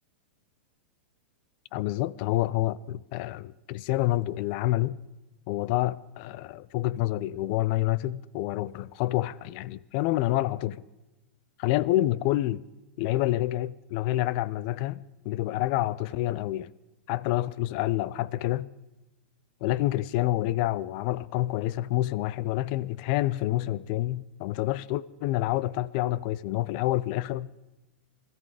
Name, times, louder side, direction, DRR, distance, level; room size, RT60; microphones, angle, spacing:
voice 1, 1.7-5.0 5.5-10.8 11.6-12.6 13.0-16.7 17.1-18.7 19.6-27.5, left 16 dB, 45° left, 0.4 m, -28 dB
20.5 x 14.0 x 4.9 m
hypercardioid pair, 140°, 6 cm